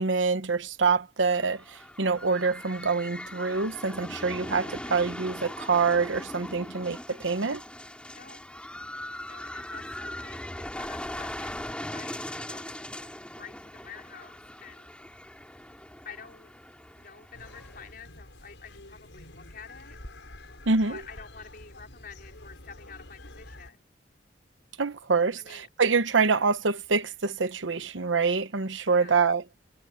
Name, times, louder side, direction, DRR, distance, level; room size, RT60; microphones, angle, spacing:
voice 1, 0.0-7.6 20.7-21.0 24.8-29.4, right 4 dB, 90° right, 1.0 m, -26 dB
sound 1, 1.3-17.9, left 1 dB, 5° left, 4.5 m, -40 dB
voice 2, 8.1-8.5 9.3-12.8 13.4-14.9 16.0-16.5 17.0-20.0 20.8-23.9 25.4-25.7 28.9-29.2, left 6 dB, 50° left, 5.1 m, -48 dB
sound 2, 17.3-23.7, left 1 dB, 85° left, 5.8 m, -48 dB
head